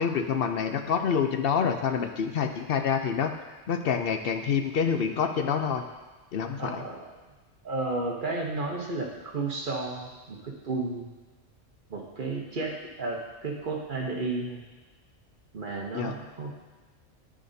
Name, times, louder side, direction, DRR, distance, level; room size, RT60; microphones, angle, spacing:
voice 1, 0.0-5.8 6.3-6.8 15.9-16.2, left 6 dB, 60° left, 6 dB, 0.7 m, -27 dB
voice 2, 6.6-7.2 7.6-11.1 11.9-14.6 15.5-16.7, right 3 dB, 45° right, 1 dB, 1.0 m, -33 dB
13.5 x 5.1 x 2.7 m, 1.2 s
omnidirectional pair, 1.3 m